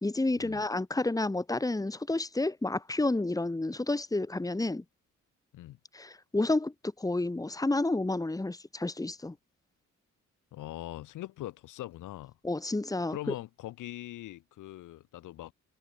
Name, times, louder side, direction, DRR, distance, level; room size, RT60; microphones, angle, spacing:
voice 1, 0.0-4.8 5.9-9.4 12.4-13.2, left 2 dB, 10° left, 2.3 m, -30 dB
voice 2, 10.5-12.4 13.1-15.5, left 15 dB, 90° left, 4.7 m, -42 dB
cardioid pair, 90°, 30 cm